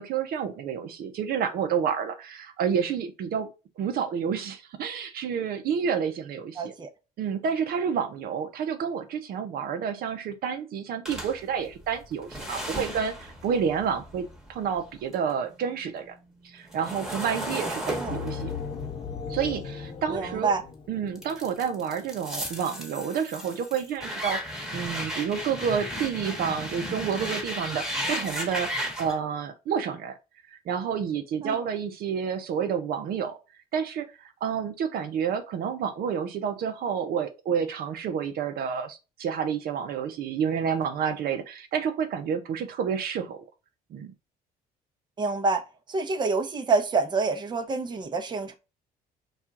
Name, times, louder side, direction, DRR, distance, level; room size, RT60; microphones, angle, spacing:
voice 1, 0.0-3.5 3.8-6.7 7.2-16.1 16.4-18.5 19.3-20.5 20.9-24.4 24.7-30.2 30.5-33.4 33.7-43.4 43.9-44.1, right 7 dB, 65° right, 0.7 m, -29 dB
voice 2, 6.6-6.9 18.0-18.2 20.1-20.6 31.4-31.5 45.2-48.5, right 4 dB, 25° right, 0.7 m, -27 dB
sound 1, 11.0-15.3 15.7-20.6 21.1-29.1, equal, ahead, 1.3 m, -35 dB
sound 2, 18.1-21.5, left 6 dB, 30° left, 0.6 m, -37 dB
4.3 x 2.4 x 3.6 m
cardioid pair, 110°, 17 cm